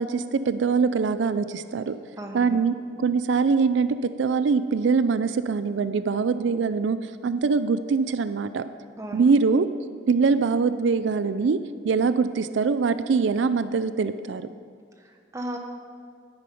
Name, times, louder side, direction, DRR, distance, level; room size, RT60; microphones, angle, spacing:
voice 1, 0.0-2.0 2.3-8.6 9.1-9.7 10.1-11.6 11.8-14.5, right 5 dB, 85° right, 13 dB, 0.4 m, -23 dB
voice 2, 2.2-2.6 9.0-9.2 15.0-15.6, right 1 dB, 15° right, 3 dB, 0.9 m, -36 dB
9.9 x 9.8 x 5.4 m, 2.3 s
head